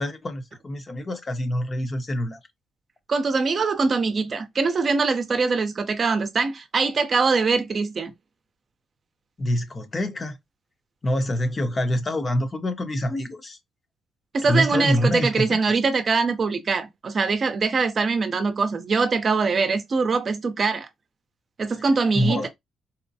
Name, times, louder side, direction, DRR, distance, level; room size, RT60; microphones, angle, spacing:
voice 1, 0.0-2.4 9.4-10.4 11.0-13.6 14.5-15.8 22.1-22.5, left 1 dB, 30° left, 0.8 m, -26 dB
voice 2, 3.1-8.1 14.3-20.9 21.6-22.5, right 4 dB, 40° right, 0.7 m, -23 dB
4.1 x 2.1 x 2.7 m
cardioid pair, 90°, 0 cm